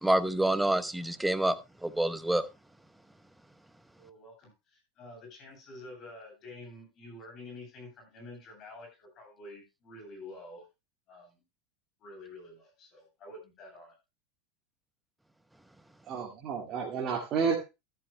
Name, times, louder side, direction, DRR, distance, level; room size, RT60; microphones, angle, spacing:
voice 1, 0.0-1.6 1.8-2.5, right 1 dB, 5° right, 1.0 m, -27 dB
voice 2, 4.0-10.6 11.1-11.4 12.0-13.9, left 2 dB, 40° left, 7.9 m, -48 dB
voice 3, 16.1-17.6, right 6 dB, 40° right, 2.1 m, -30 dB
14.0 x 11.5 x 2.2 m
hypercardioid pair, 90°, 0 cm